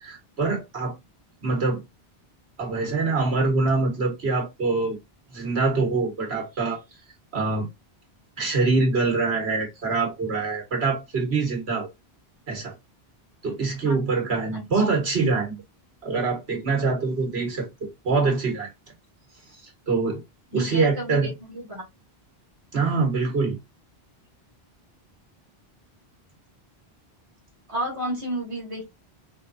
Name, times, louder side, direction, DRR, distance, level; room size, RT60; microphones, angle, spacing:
voice 1, 0.0-0.9 1.4-1.8 2.6-5.0 5.3-6.8 7.3-7.7 8.4-11.9 12.5-12.7 13.4-15.6 16.0-18.7 19.6-20.2 20.5-21.3 22.7-23.6, right 4 dB, 80° right, 1.8 m, -24 dB
voice 2, 20.5-21.8 27.7-28.8, right 1 dB, 30° right, 2.0 m, -32 dB
4.1 x 3.8 x 2.6 m
omnidirectional pair, 1.1 m